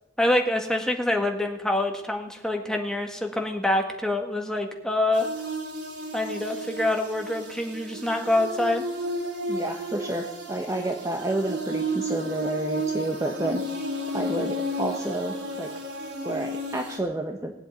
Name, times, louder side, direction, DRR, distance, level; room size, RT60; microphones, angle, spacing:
voice 1, 0.2-5.3 6.1-8.8, left 1 dB, 5° left, 3 dB, 1.8 m, -26 dB
sound 1, 5.1-17.0, equal, 60° right, 3.5 m, -32 dB
voice 2, 9.5-13.6 14.1-15.7 16.2-17.5, right 1 dB, 15° right, 3 dB, 1.1 m, -30 dB
19.0 x 8.0 x 9.3 m, 0.92 s
head